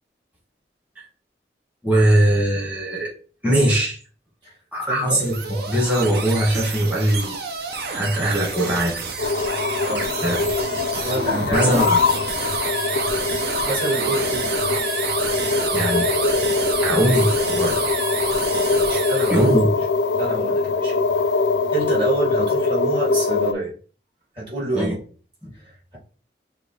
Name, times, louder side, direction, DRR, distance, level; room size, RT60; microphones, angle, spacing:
voice 1, 1.8-3.1 3.4-4.0 4.7-7.4 7.9-9.0 9.9-10.4 11.5-12.0 15.7-16.1 16.8-17.8 19.3-19.7 24.7-24.9 25.4-25.5, right 1 dB, 10° right, -4 dB, 1.6 m, -20 dB
voice 2, 4.9-5.2 9.9-10.1 11.1-11.7 13.5-14.5 18.8-19.5 20.2-21.0 21.7-23.7 24.3-25.0 25.6-26.0, right 1 dB, 30° right, -5 dB, 2.3 m, -27 dB
sound 1, 5.0-19.6, right 4 dB, 60° right, 0.8 m, -29 dB
sound 2, 9.2-23.5, left 4 dB, 80° left, 0.4 m, -23 dB
6.2 x 2.6 x 3.2 m, 0.39 s
head